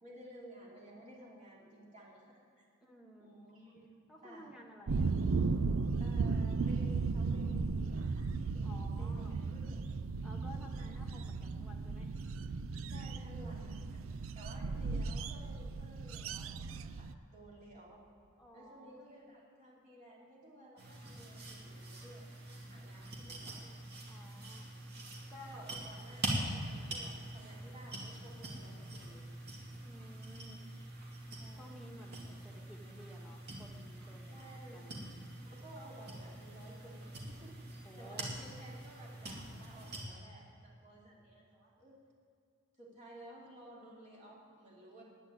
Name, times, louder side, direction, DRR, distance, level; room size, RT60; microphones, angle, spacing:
voice 1, 0.0-2.6 3.2-3.8 4.2-4.5 6.0-9.8 10.7-10.9 12.9-14.0 14.3-18.0 18.5-23.7 25.3-29.4 31.4-31.9 34.3-34.9 35.4-37.6 38.0-41.9 42.8-45.0, right 1 dB, 40° right, -4 dB, 2.8 m, -55 dB
voice 2, 2.8-3.3 4.1-5.2 8.6-9.3 10.2-12.2 18.4-19.0 24.0-24.7 25.3-25.7 29.8-30.6 31.6-35.0 37.8-38.3, left 1 dB, ahead, -1 dB, 1.6 m, -55 dB
sound 1, 4.9-17.1, right 4 dB, 85° right, 0.5 m, -36 dB
sound 2, 20.8-40.0, right 1 dB, 55° right, 2.5 m, -44 dB
10.0 x 9.9 x 9.5 m, 2.4 s
head